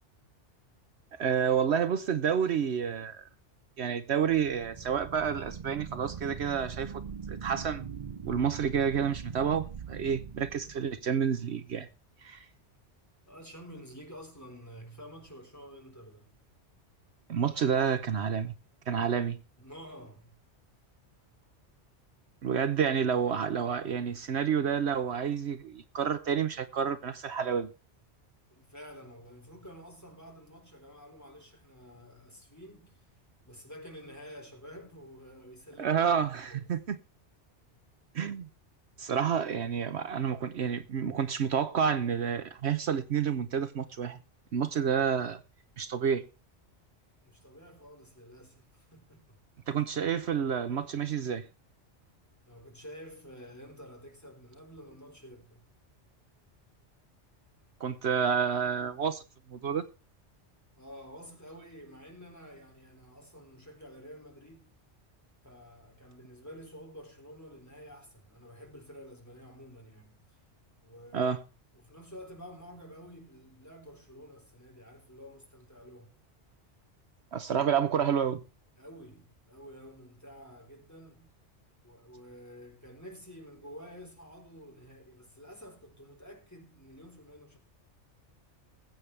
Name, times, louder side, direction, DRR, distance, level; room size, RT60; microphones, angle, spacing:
voice 1, 1.2-3.3 3.8-7.0 7.3-7.8 8.2-11.9 12.2-12.5 17.3-18.5 18.9-19.4 22.4-27.7 35.8-37.0 38.1-38.5 39.0-44.2 44.5-45.4 45.8-46.2 49.7-51.5 57.8-59.2 59.5-59.8 71.1-71.4 77.3-78.4, right 7 dB, 70° right, 1.0 m, -29 dB
sound 1, 4.5-11.2, right 7 dB, 40° right, 0.6 m, -42 dB
voice 2, 13.3-16.3 19.6-20.4 28.5-33.0 33.4-36.1 36.5-36.8 47.2-49.4 52.5-55.6 60.8-64.7 65.4-70.4 70.8-71.4 71.7-76.1 78.8-81.3 81.8-87.6, equal, 15° left, 4.0 m, -50 dB
20.5 x 8.4 x 3.3 m
omnidirectional pair, 1.2 m